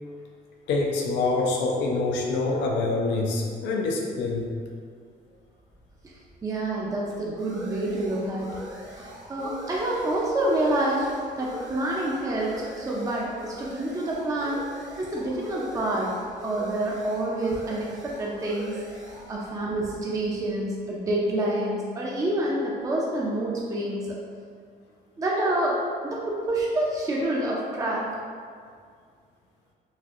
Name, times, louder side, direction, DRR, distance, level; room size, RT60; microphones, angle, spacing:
voice 1, 0.7-4.5 19.1-19.3, left 3 dB, 85° left, 0 dB, 0.5 m, -26 dB
sound 1, 5.5-20.9, right 1 dB, 65° right, 0.9 m, -43 dB
voice 2, 6.4-8.5 8.9-11.1 11.4-14.7 15.0-16.1 16.4-18.8 19.3-24.2 25.2-25.8 26.0-28.0, right 1 dB, 20° right, -4 dB, 0.4 m, -27 dB
4.1 x 2.5 x 2.4 m, 2.1 s
cardioid pair, 120°, 18 cm